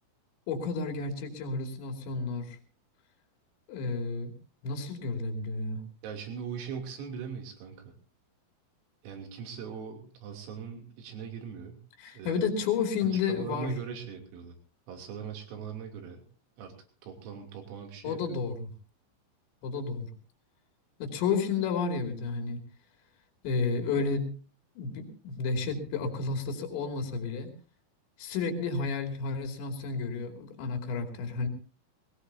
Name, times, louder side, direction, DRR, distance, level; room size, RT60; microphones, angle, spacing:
voice 1, 0.5-2.6 3.7-4.3 4.6-5.8 12.0-13.7 18.0-18.7 19.6-20.1 21.0-22.6 23.4-24.3 24.8-27.5 28.2-31.5, left 5 dB, 65° left, 2 dB, 4.7 m, -31 dB
voice 2, 6.0-7.9 9.0-11.8 12.1-12.4 13.3-14.5 14.9-16.3 16.6-16.7 17.0-18.2, right 7 dB, 85° right, 2 dB, 5.7 m, -40 dB
21.5 x 18.5 x 2.8 m, 0.38 s
omnidirectional pair, 5.9 m